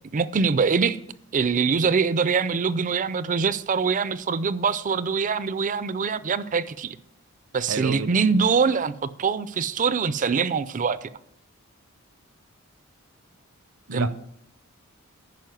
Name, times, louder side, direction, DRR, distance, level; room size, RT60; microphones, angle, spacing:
voice 1, 0.1-1.0 1.3-7.0 7.5-11.1 13.9-14.1, right 5 dB, 35° right, 16 dB, 0.5 m, -23 dB
voice 2, 7.6-8.1 13.9-14.1, right 4 dB, 70° right, 12 dB, 0.8 m, -30 dB
10.5 x 5.1 x 7.7 m, 0.72 s
head